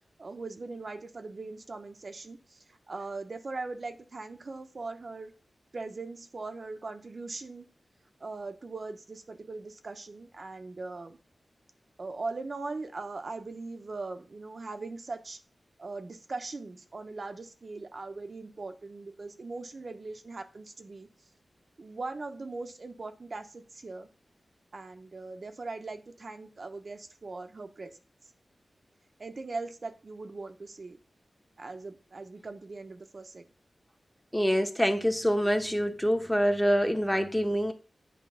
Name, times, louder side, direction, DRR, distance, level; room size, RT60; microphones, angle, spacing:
voice 1, 0.2-2.4 2.9-5.3 5.7-7.7 8.2-11.2 12.0-15.4 15.8-21.1 21.8-24.1 24.7-27.9 29.2-31.0 31.6-33.4, right 3 dB, 60° right, 0.9 m, -40 dB
voice 2, 34.3-37.7, equal, 10° left, 1.2 m, -26 dB
8.6 x 3.0 x 5.7 m
cardioid pair, 45°, 0 cm